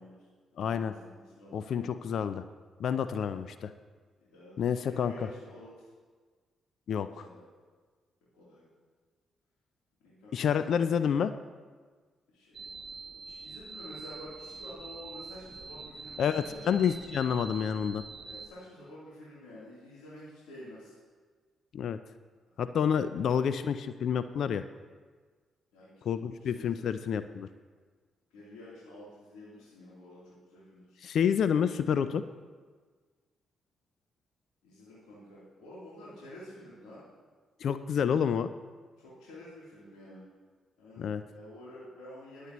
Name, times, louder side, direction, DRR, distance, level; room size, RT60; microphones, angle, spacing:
voice 1, 0.0-1.9 3.2-3.4 4.2-5.9 7.0-7.4 8.3-8.6 10.0-10.9 12.3-12.7 13.2-16.7 18.2-21.0 23.1-23.3 25.7-25.9 26.2-26.9 28.3-31.0 34.6-37.0 39.0-40.2 40.8-42.5, left 1 dB, 85° left, -9 dB, 3.4 m, -50 dB
voice 2, 0.6-0.9 1.5-2.4 2.8-3.7 4.6-5.1 6.9-7.1 10.3-11.3 16.2-18.0 21.7-22.0 22.6-24.6 26.1-27.5 31.0-32.2 37.6-38.5 41.0-41.2, left 7 dB, 70° left, 12 dB, 0.4 m, -29 dB
sound 1, 12.5-18.5, right 4 dB, 40° right, 1.2 m, -45 dB
22.0 x 8.2 x 3.1 m, 1.5 s
supercardioid pair, 50°, 0 cm